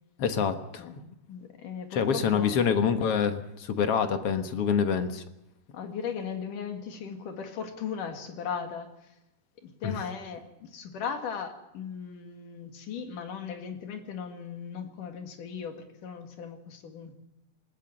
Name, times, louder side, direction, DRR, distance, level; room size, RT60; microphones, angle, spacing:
voice 1, 0.2-1.1 1.9-5.2 9.8-10.0, left 7 dB, 55° left, 9 dB, 2.0 m, -26 dB
voice 2, 1.3-2.7 5.7-9.1 9.6-17.2, left 7 dB, 85° left, 6 dB, 3.6 m, -37 dB
20.0 x 19.5 x 7.7 m, 0.89 s
omnidirectional pair, 3.6 m